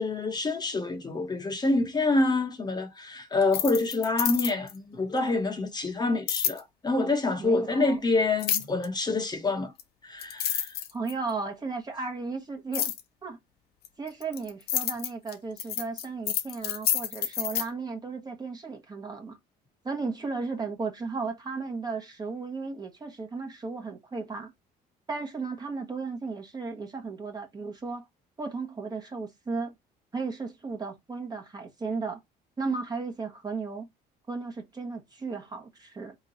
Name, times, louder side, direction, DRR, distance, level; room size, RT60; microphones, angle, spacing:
voice 1, 0.0-9.7 10.0-10.8, left 3 dB, 25° left, 1.2 m, -27 dB
sound 1, 3.4-4.8 6.3-6.6 8.4-8.9 9.8-9.9 10.2-11.3 12.7-13.0 13.8-17.7, left 10 dB, 70° left, 0.8 m, -29 dB
voice 2, 7.4-8.0 10.9-12.9 13.2-13.4 14.0-19.4 19.8-24.5 25.1-28.1 28.4-29.7 30.1-32.2 32.6-33.9 34.3-36.2, right 4 dB, 25° right, 1.3 m, -35 dB
3.7 x 3.1 x 4.0 m
cardioid pair, 110°, 17 cm